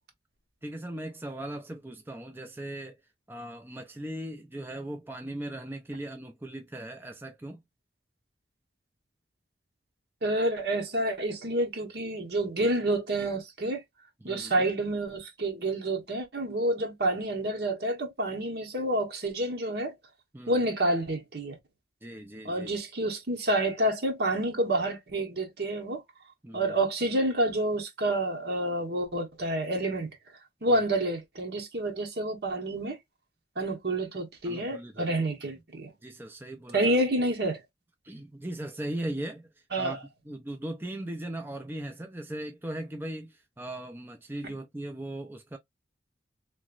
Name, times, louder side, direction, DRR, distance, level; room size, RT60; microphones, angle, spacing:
voice 1, 0.6-3.0 3.3-7.6 14.2-14.7 20.3-20.6 22.0-22.7 26.4-26.8 30.7-30.8 34.4-35.1 36.0-36.8 38.0-39.5 39.8-40.0 40.3-45.6, right 1 dB, 10° right, 0.5 m, -38 dB
voice 2, 10.2-13.8 14.2-20.0 20.5-21.6 22.4-26.0 26.5-30.2 30.6-33.0 33.6-35.9 36.7-37.6 39.7-40.0, right 1 dB, 60° right, 1.1 m, -28 dB
3.2 x 2.9 x 2.4 m
head